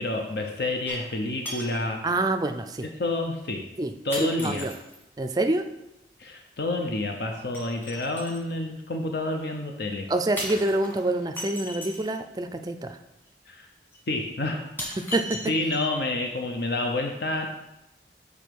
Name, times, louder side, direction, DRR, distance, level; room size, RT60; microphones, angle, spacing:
voice 1, 0.0-2.0 3.0-3.6 4.0-4.7 6.2-10.1 13.5-13.7 14.1-14.6 15.5-17.5, left 2 dB, 65° left, 3 dB, 0.7 m, -29 dB
sound 1, 0.9-1.2 1.4-1.9 2.8-2.9 4.1-5.0 7.5-8.4 10.4-12.1 13.3-13.4 13.9-14.0 14.8-16.0 16.4-16.5, equal, 10° left, 1.4 m, -37 dB
voice 2, 2.0-2.9 3.8-3.9 4.2-4.7 5.2-5.6 10.1-13.0 15.0-15.4, right 2 dB, 20° right, 7 dB, 0.4 m, -26 dB
7.0 x 4.9 x 4.6 m, 0.90 s
head